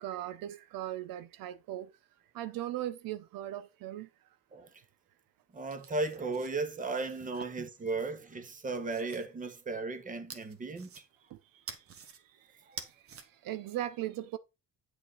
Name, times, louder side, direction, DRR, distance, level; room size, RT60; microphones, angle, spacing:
voice 1, 0.0-1.9 2.3-4.1 7.4-7.5 13.4-14.4, right 13 dB, 75° right, 0.7 m, -38 dB
voice 2, 5.5-11.0 12.7-12.8, right 3 dB, 25° right, 1.1 m, -36 dB
sound 1, 5.5-7.9 8.4-9.3 10.3-11.3 11.7-12.2 12.6-13.3, right 6 dB, 40° right, 1.2 m, -48 dB
8.7 x 5.0 x 3.9 m
cardioid pair, 155°, 34 cm